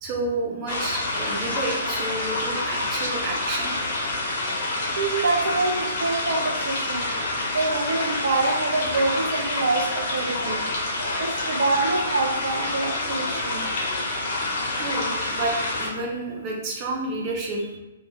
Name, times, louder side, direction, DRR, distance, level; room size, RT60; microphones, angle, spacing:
voice 1, 0.0-3.8 14.8-17.8, right 2 dB, 30° right, -2 dB, 0.9 m, -30 dB
sound 1, 0.7-15.9, left 2 dB, 45° left, 1.1 m, -27 dB
voice 2, 5.0-7.1 7.5-10.6 11.2-13.7, right 3 dB, 65° right, 1 dB, 0.5 m, -25 dB
3.1 x 2.7 x 3.5 m, 1.0 s
figure-of-eight pair, 125°, 0 cm